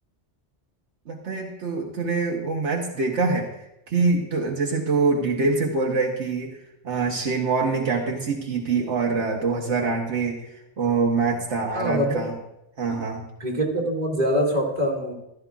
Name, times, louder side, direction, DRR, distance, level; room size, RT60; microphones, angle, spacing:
voice 1, 1.1-3.5 3.9-6.6 6.8-10.4 10.8-12.3 12.8-13.2, right 4 dB, 75° right, 0 dB, 1.4 m, -24 dB
voice 2, 11.7-12.2 13.4-15.1, equal, 35° right, -2 dB, 2.2 m, -24 dB
15.0 x 12.5 x 2.4 m, 0.85 s
omnidirectional pair, 1.2 m